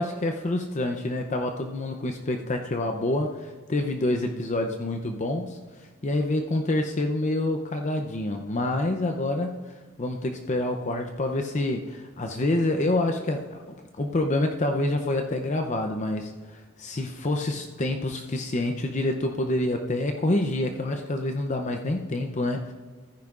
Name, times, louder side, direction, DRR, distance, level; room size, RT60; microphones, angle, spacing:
voice 1, 0.0-13.6 14.0-22.7, left 1 dB, 35° left, 4 dB, 0.6 m, -27 dB
14.5 x 9.9 x 2.5 m, 1.4 s
head